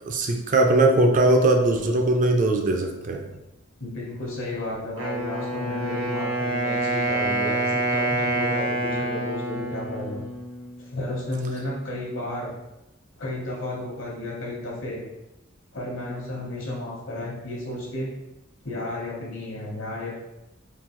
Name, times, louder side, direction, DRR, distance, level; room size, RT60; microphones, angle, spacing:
voice 1, 0.1-3.3, right 2 dB, 40° right, 3 dB, 0.4 m, -20 dB
voice 2, 3.8-10.3 10.8-12.5 13.2-15.0 15.7-18.1 18.6-20.2, left 2 dB, 70° left, -3 dB, 1.1 m, -32 dB
Wind instrument woodwind instrument, 5.0-10.9, right 2 dB, 60° right, 0.7 m, -27 dB
3.7 x 2.7 x 3.0 m, 0.95 s
head